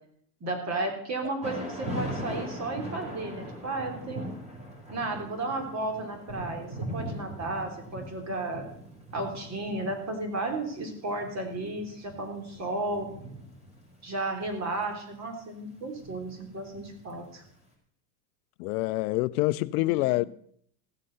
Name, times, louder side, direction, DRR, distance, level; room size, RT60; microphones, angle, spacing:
voice 1, 0.4-4.3 4.9-8.6 9.1-13.1 14.0-17.4 19.8-20.2, right 2 dB, 35° right, 3.8 m, -33 dB
Thunder / Rain, 1.4-17.4, equal, 15° right, 4.5 m, -40 dB
voice 2, 18.6-20.2, left 20 dB, 65° left, 0.5 m, -26 dB
16.0 x 7.5 x 6.7 m
hypercardioid pair, 100°, 49 cm